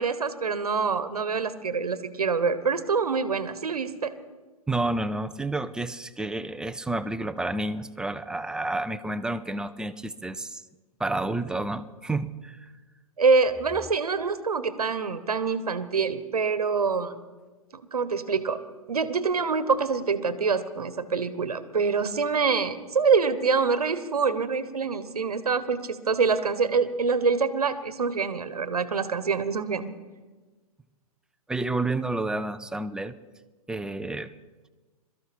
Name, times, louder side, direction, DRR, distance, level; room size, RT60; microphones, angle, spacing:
voice 1, 0.0-4.1 13.2-17.2 17.7-18.6 18.9-29.9, right 5 dB, 80° right, 13 dB, 1.1 m, -25 dB
voice 2, 4.7-10.6 11.0-12.7 31.5-33.2 33.7-34.3, right 2 dB, 5° right, 12 dB, 0.4 m, -30 dB
22.5 x 13.5 x 4.3 m, 1.3 s
figure-of-eight pair, 120°, 19 cm